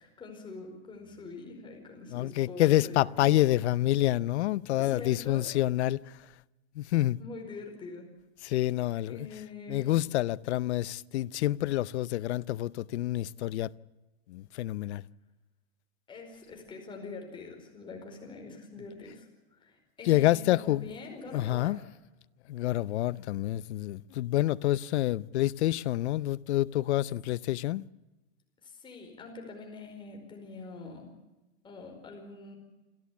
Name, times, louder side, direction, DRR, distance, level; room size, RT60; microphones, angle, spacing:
voice 1, 0.0-3.3 4.8-5.5 7.2-8.1 9.1-9.9 16.1-21.8 28.6-31.1 31.6-32.6, left 3 dB, 15° left, 4.9 m, -44 dB
voice 2, 2.1-6.0 6.8-7.2 8.4-9.3 9.7-13.7 14.3-15.0 20.0-20.8 21.3-21.8 22.5-27.8, left 15 dB, 85° left, 0.7 m, -27 dB
28.0 x 13.5 x 8.4 m
supercardioid pair, 155°, 32 cm